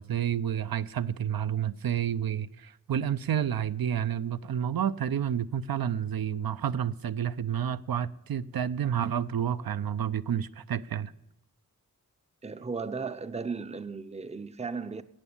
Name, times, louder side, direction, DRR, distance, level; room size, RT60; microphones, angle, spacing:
voice 1, 0.0-11.1, right 9 dB, 75° right, 0.5 m, -30 dB
voice 2, 12.4-15.0, right 4 dB, 20° right, 0.5 m, -35 dB
14.0 x 8.1 x 8.5 m
wide cardioid pair, 100°, 36 cm